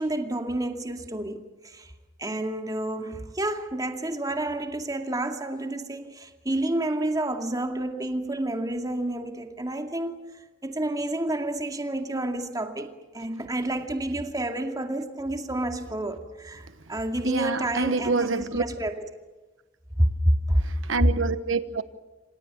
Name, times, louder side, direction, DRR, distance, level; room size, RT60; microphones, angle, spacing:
voice 1, 0.0-1.9 2.2-10.3 10.6-19.1 20.0-20.6, right 1 dB, 20° right, 2.3 m, -29 dB
voice 2, 17.2-18.6 20.6-21.8, right 4 dB, 85° right, 1.2 m, -27 dB
27.5 x 27.0 x 7.2 m
head